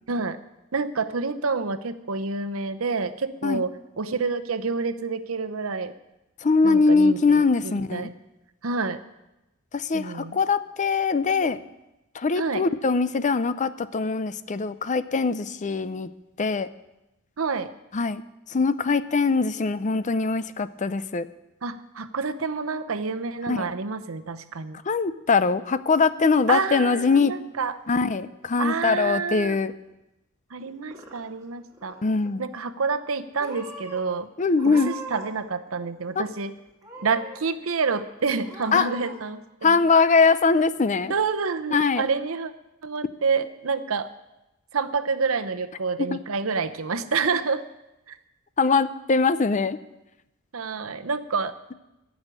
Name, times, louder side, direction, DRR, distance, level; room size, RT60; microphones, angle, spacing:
voice 1, 0.1-0.4 0.7-5.9 6.6-8.1 8.6-9.0 9.9-10.4 12.4-12.6 17.4-17.7 21.6-24.8 26.5-27.7 28.6-29.6 30.5-32.0 32.4-34.3 34.7-36.5 37.0-39.8 41.1-42.5 42.8-44.1 44.7-47.7 48.1-48.2 50.5-51.7, right 4 dB, 80° right, 10 dB, 0.8 m, -28 dB
voice 2, 6.4-8.1 9.7-11.6 12.1-16.1 16.4-16.7 17.9-18.2 18.5-21.3 23.5-23.7 24.9-27.4 27.9-29.7 32.0-32.4 34.4-35.0 36.2-36.3 38.7-38.9 39.6-41.1 41.7-42.1 46.0-46.2 48.6-49.8, left 4 dB, 35° left, 14 dB, 0.5 m, -22 dB
Purr / Meow, 30.6-31.5 31.7-32.3 33.0-33.1 33.4-34.0 34.5-35.4 35.7-36.4 36.8-37.4 37.8-37.9 38.4-39.2, right 2 dB, 15° right, 2.5 m, -41 dB
15.0 x 6.2 x 9.9 m, 0.96 s
head